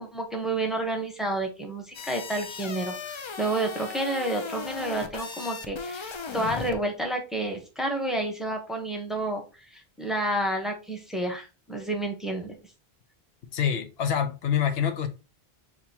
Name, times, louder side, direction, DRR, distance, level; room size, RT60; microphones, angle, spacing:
voice 1, 0.0-9.4 9.7-12.6, right 1 dB, ahead, 0.8 m, -30 dB
sound 1, 1.9-6.8, left 5 dB, 40° left, 0.4 m, -37 dB
voice 2, 13.5-15.1, left 8 dB, 80° left, 0.9 m, -26 dB
6.1 x 2.9 x 2.8 m
omnidirectional pair, 1.0 m